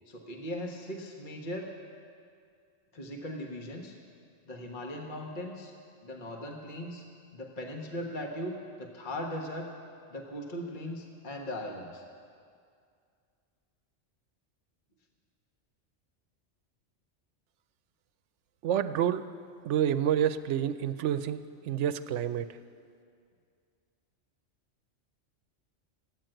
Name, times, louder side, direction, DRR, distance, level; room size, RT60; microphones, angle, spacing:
voice 1, 0.1-1.7 2.9-3.9 4.5-5.7 6.0-7.0 7.3-9.7 10.1-12.0, left 1 dB, 45° left, 1 dB, 1.4 m, -39 dB
voice 2, 18.6-19.2 19.6-22.5, right 9 dB, 75° right, 12 dB, 0.9 m, -28 dB
14.0 x 9.2 x 9.0 m, 2.3 s
omnidirectional pair, 1.2 m